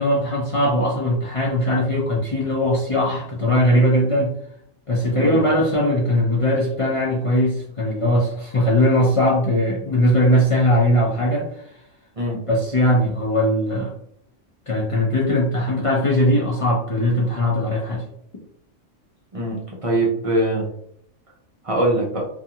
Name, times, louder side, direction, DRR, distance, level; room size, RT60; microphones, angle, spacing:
voice 1, 0.0-4.3 4.9-11.5 12.5-13.9 14.7-18.0, equal, 50° left, -4 dB, 0.4 m, -20 dB
voice 2, 19.3-20.7 21.6-22.2, right 1 dB, 40° right, -3 dB, 0.5 m, -22 dB
2.5 x 2.3 x 2.8 m, 0.68 s
omnidirectional pair, 1.3 m